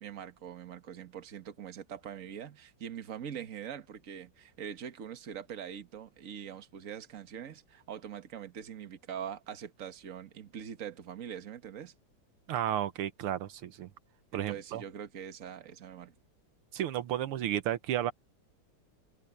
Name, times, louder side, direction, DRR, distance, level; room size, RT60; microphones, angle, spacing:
voice 1, 0.0-11.9 14.3-16.1, right 8 dB, 40° right, 1.6 m, -43 dB
voice 2, 12.5-13.9 14.3-14.8 16.7-18.1, right 11 dB, 85° right, 1.9 m, -32 dB
omnidirectional pair, 2.4 m